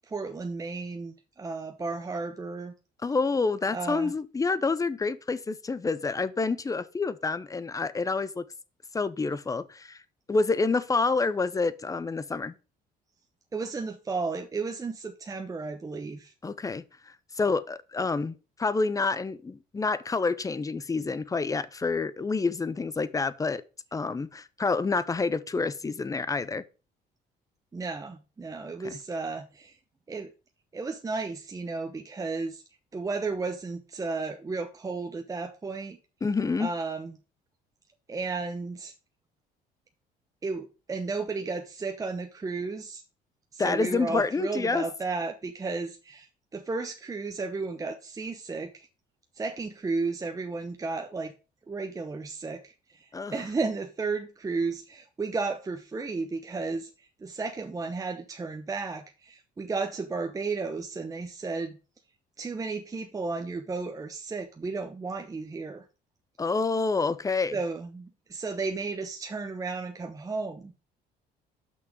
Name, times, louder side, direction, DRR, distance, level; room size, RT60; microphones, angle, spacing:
voice 1, 0.1-2.7 3.7-4.1 13.5-16.3 27.7-29.8 30.1-30.3 30.7-32.6 32.9-36.0 36.6-37.1 38.1-38.9 40.4-43.0 43.5-48.9 49.4-51.3 51.7-61.8 62.4-65.8 67.5-70.7, right 4 dB, 20° right, 0.8 m, -33 dB
voice 2, 3.0-8.5 8.9-10.0 10.3-12.5 16.4-16.8 17.3-23.6 23.9-26.6 28.8-29.0 36.2-36.7 43.6-44.8 53.1-53.3 66.4-67.6, left 4 dB, 20° left, 0.7 m, -28 dB
6.1 x 5.9 x 6.1 m
cardioid pair, 110°, 17 cm